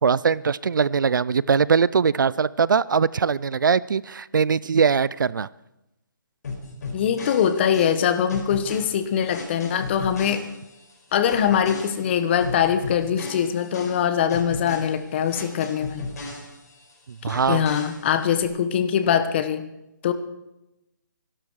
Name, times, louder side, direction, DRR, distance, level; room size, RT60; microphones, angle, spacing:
voice 1, 0.0-5.5 17.2-17.6, right 6 dB, 75° right, 21 dB, 0.5 m, -21 dB
sound 1, 6.4-10.9 11.3-16.9 17.3-18.4, left 3 dB, 55° left, 4.9 m, -36 dB
voice 2, 6.9-10.4 11.1-16.1 17.5-19.6 20.0-20.1, left 8 dB, 35° left, 10 dB, 1.3 m, -22 dB
24.0 x 12.5 x 4.8 m, 0.92 s
hypercardioid pair, 155°, 11 cm